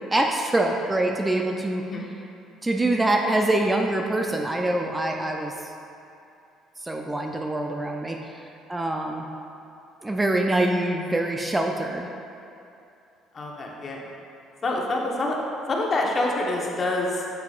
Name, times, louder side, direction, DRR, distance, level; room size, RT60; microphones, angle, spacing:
voice 1, 0.1-1.8 2.6-5.7 6.8-9.3 10.0-12.1, right 1 dB, 15° right, 2 dB, 0.5 m, -25 dB
voice 2, 13.3-14.1 14.6-15.4 15.7-17.4, left 2 dB, 40° left, -1 dB, 1.2 m, -26 dB
8.0 x 6.8 x 2.5 m, 2.7 s
supercardioid pair, 80°, 0 cm